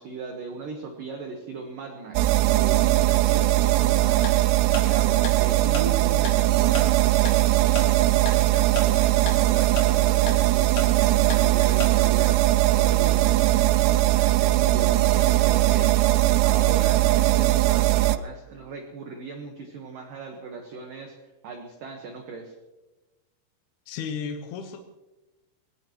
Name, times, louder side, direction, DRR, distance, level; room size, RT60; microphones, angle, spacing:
voice 1, 0.0-4.5 4.8-7.6 7.9-21.1 21.4-22.5, right 4 dB, 65° right, 3 dB, 2.3 m, -38 dB
sound 1, 2.2-18.2, right 16 dB, 90° right, 2.4 m, -20 dB
Tick-tock, 4.2-4.3 4.7-4.8 5.2-5.3 5.7-5.8 6.3-6.4 6.8-6.9 7.3-7.4 7.8-7.9 8.3-8.4 8.8-8.9 9.3-9.4 9.8-9.9 10.3-10.4 10.8-10.9 11.3-11.4 11.8-11.9, left 4 dB, 90° left, 5.2 m, -32 dB
voice 2, 23.9-24.8, left 6 dB, 70° left, 4 dB, 2.7 m, -33 dB
22.5 x 18.0 x 3.1 m, 1.1 s
omnidirectional pair, 5.6 m